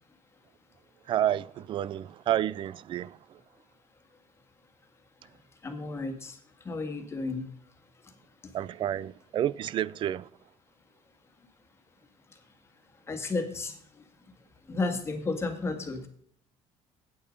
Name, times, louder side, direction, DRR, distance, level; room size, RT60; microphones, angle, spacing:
voice 1, 1.1-3.2 8.5-10.3, right 11 dB, 45° right, 0.4 m, -30 dB
voice 2, 5.6-7.5 8.0-8.1 13.1-13.8 14.7-16.1, left 3 dB, 20° left, 1.8 m, -33 dB
8.9 x 8.5 x 5.2 m
cardioid pair, 130°, 12 cm